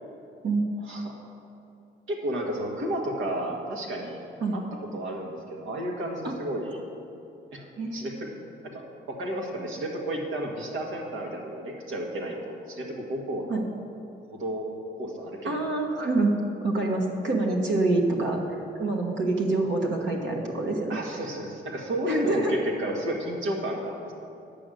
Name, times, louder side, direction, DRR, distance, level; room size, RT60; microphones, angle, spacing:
voice 1, 2.1-4.2 4.5-4.6 4.9-6.8 7.5-8.3 8.6-13.5 14.3-14.7 15.0-15.6 20.9-24.1, right 1 dB, 85° right, 0 dB, 1.6 m, -32 dB
voice 2, 15.4-16.3 16.6-21.0 22.1-22.5, right 2 dB, 65° right, 0 dB, 1.3 m, -26 dB
10.0 x 5.3 x 7.6 m, 2.6 s
cardioid pair, 90°, 20 cm